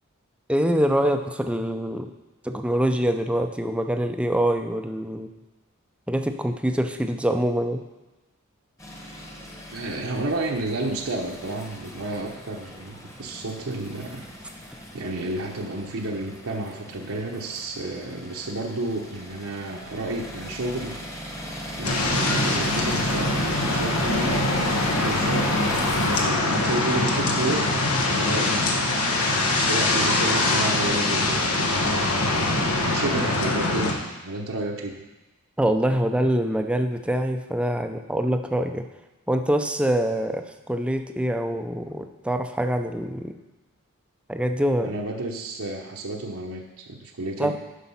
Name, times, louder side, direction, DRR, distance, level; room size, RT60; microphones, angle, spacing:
voice 1, 0.5-2.1 2.4-5.3 6.1-7.8 35.6-38.8 39.3-43.4 44.3-44.9 47.4-47.6, equal, 5° right, 6 dB, 0.5 m, -24 dB
sound 1, 8.8-26.2, equal, 15° left, 1.2 m, -37 dB
voice 2, 9.7-14.3 14.9-21.0 21.8-24.4 24.9-25.5 25.9-27.7 28.1-31.4 31.8-35.0 44.8-47.6, right 2 dB, 70° right, 0 dB, 0.9 m, -31 dB
sound 2, 21.8-33.9, left 2 dB, 85° left, 1.3 m, -23 dB
10.0 x 5.4 x 5.6 m, 1.1 s
head